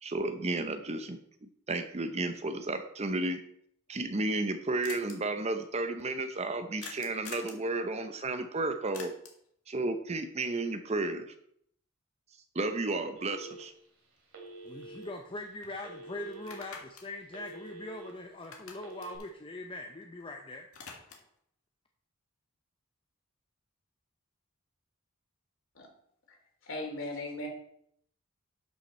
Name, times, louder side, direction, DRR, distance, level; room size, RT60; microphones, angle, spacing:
voice 1, 0.0-3.4 3.9-9.1 9.7-11.3 12.5-13.7, right 2 dB, 30° right, 8 dB, 0.7 m, -33 dB
sound 1, 3.9-4.0 4.1-4.2 4.4-4.5 4.8-5.1 6.8-7.6 8.9-9.5 13.7-13.8 14.2-15.3 15.6-15.7 16.3-18.1 18.4-20.2 20.5-21.4, left 5 dB, 85° left, 1.8 m, -48 dB
Telephone, 13.2-13.9 14.3-15.1 15.8-16.6 17.0-18.1 18.7-19.2, right 2 dB, 65° right, 2.9 m, -47 dB
voice 2, 14.6-20.7, left 2 dB, 25° left, 3 dB, 0.7 m, -42 dB
voice 3, 26.6-27.5, left 1 dB, 60° left, 0 dB, 2.8 m, -37 dB
12.0 x 5.9 x 4.2 m, 0.68 s
head